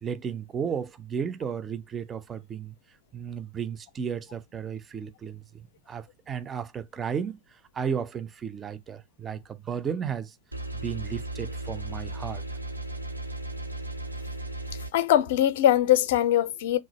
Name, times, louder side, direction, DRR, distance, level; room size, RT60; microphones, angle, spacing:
voice 1, 0.0-2.7 3.1-10.4 10.7-12.4, right 7 dB, 20° right, 0.4 m, -34 dB
sound 1, 10.5-14.9, right 2 dB, 85° right, 0.5 m, -35 dB
voice 2, 14.9-16.8, left 12 dB, 55° left, 0.4 m, -21 dB
3.2 x 2.4 x 2.9 m
figure-of-eight pair, 90°, 0 cm